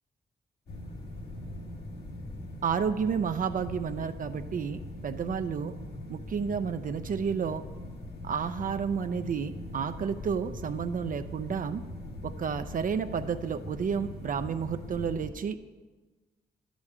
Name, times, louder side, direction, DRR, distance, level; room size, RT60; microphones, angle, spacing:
sound 1, 0.7-15.3, left 1 dB, 75° left, 1.7 m, -41 dB
voice 1, 2.6-5.7 6.1-7.6 8.2-11.8 12.2-15.6, right 6 dB, 55° right, 9 dB, 0.5 m, -31 dB
11.0 x 5.1 x 8.4 m, 1.3 s
cardioid pair, 110°, 17 cm